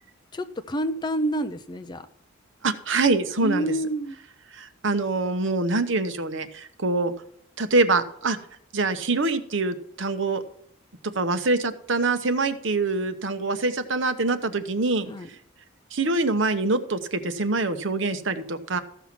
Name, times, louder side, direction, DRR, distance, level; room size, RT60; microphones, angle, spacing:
voice 1, 0.3-2.1 3.4-4.2 15.1-15.3, right 1 dB, 20° left, 0.5 m, -28 dB
voice 2, 2.6-3.7 4.5-7.1 7.6-8.4 8.7-10.4 11.0-15.1 15.9-18.8, right 3 dB, 65° right, 1.0 m, -25 dB
14.5 x 5.7 x 5.9 m
head